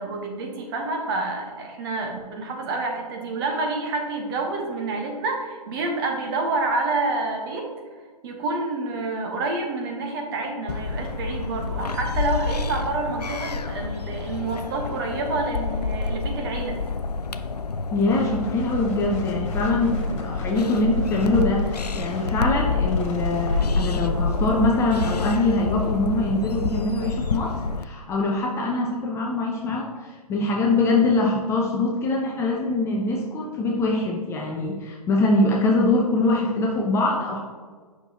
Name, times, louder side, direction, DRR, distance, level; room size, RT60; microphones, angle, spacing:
voice 1, 0.0-7.7 8.2-16.8, right 3 dB, 35° right, 2 dB, 1.3 m, -28 dB
sound 1, 10.7-27.8, left 4 dB, 85° left, 0.4 m, -28 dB
voice 2, 17.9-27.5 27.8-37.4, left 2 dB, 15° left, -1 dB, 0.6 m, -23 dB
sound 2, 18.1-24.2, left 2 dB, 50° left, 1.7 m, -42 dB
8.8 x 5.8 x 2.9 m, 1.5 s
figure-of-eight pair, 125°, 20 cm